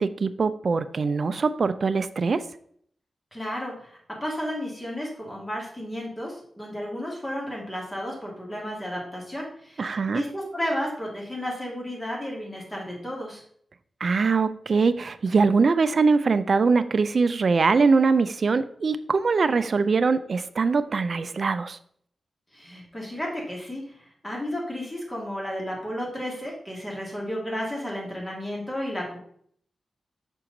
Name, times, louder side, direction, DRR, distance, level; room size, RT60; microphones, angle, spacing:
voice 1, 0.0-2.5 9.8-10.2 14.0-21.8, right 4 dB, 50° right, 13 dB, 0.3 m, -22 dB
voice 2, 3.3-13.4 22.5-29.2, equal, 15° left, -2 dB, 1.9 m, -33 dB
6.0 x 4.5 x 3.8 m, 0.63 s
wide cardioid pair, 110°, 0 cm